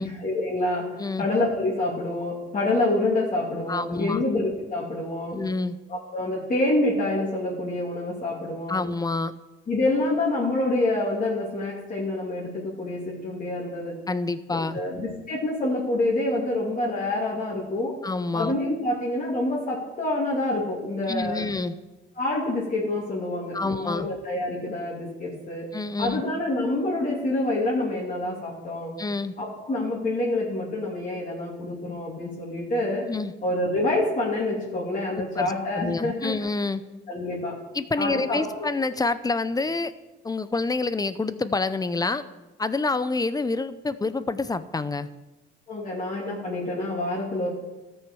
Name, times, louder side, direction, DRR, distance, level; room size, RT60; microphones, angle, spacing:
voice 1, 0.0-0.9 1.2-5.4 5.9-8.8 9.7-13.9 14.5-17.9 18.3-21.5 22.1-25.7 26.0-28.9 29.4-33.1 33.4-36.3 37.1-37.6 38.0-38.7 45.7-47.5, left 2 dB, 40° left, -5 dB, 2.8 m, -27 dB
voice 2, 3.7-4.2 5.3-5.8 8.7-9.3 14.1-14.8 18.0-18.5 21.1-21.8 23.5-24.1 25.7-26.2 29.0-29.3 33.1-33.3 35.4-36.8 37.7-39.9 40.2-42.2 42.6-45.1, left 3 dB, 20° left, 13 dB, 0.6 m, -27 dB
13.5 x 6.4 x 6.2 m, 1.1 s
cardioid pair, 90°, 20 cm